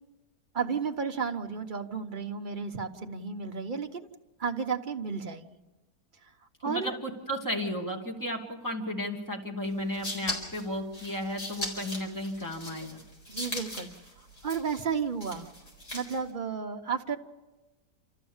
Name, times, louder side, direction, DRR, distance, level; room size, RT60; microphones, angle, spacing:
voice 1, 0.5-4.0 4.4-5.5 6.6-6.9 13.3-13.9 14.4-15.5 15.9-17.2, right 6 dB, 35° right, 5 dB, 1.0 m, -32 dB
voice 2, 6.6-13.0, left 1 dB, 10° left, 1 dB, 2.5 m, -34 dB
sound 1, 9.7-16.3, left 1 dB, 65° left, 5.2 m, -39 dB
28.0 x 14.0 x 7.2 m, 1.1 s
omnidirectional pair, 1.8 m